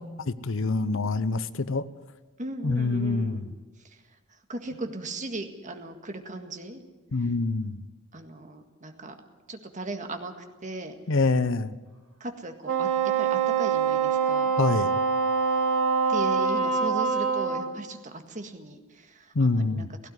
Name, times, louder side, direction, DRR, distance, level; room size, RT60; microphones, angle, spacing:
voice 1, 0.0-1.9 2.6-3.5 7.1-7.8 11.1-11.7 14.6-14.9 19.3-19.9, left 3 dB, 60° left, 15 dB, 0.8 m, -26 dB
voice 2, 2.4-3.4 4.5-6.8 8.1-9.1 9.5-10.3 10.6-10.9 12.2-12.9 13.2-14.6 16.1-20.1, right 2 dB, 35° right, 6 dB, 1.9 m, -37 dB
Wind instrument woodwind instrument, 12.6-17.7, right 6 dB, 70° right, 3.3 m, -24 dB
17.0 x 16.0 x 9.6 m, 1.3 s
head